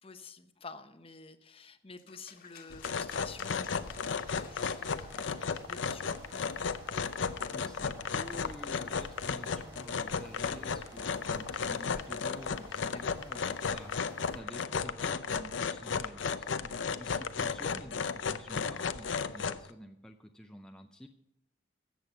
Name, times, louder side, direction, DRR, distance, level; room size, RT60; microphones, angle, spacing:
voice 1, 0.0-6.1 12.9-13.1, left 4 dB, 30° left, 9 dB, 0.8 m, -50 dB
sound 1, 2.0-7.2, left 7 dB, 50° left, 1.5 m, -56 dB
sound 2, 2.7-19.7, left 5 dB, 80° left, 0.6 m, -34 dB
sound 3, 3.2-14.4, right 1 dB, 25° right, 2.7 m, -53 dB
voice 2, 7.5-21.1, equal, 5° left, 4 dB, 0.5 m, -49 dB
13.5 x 8.5 x 5.6 m, 0.87 s
head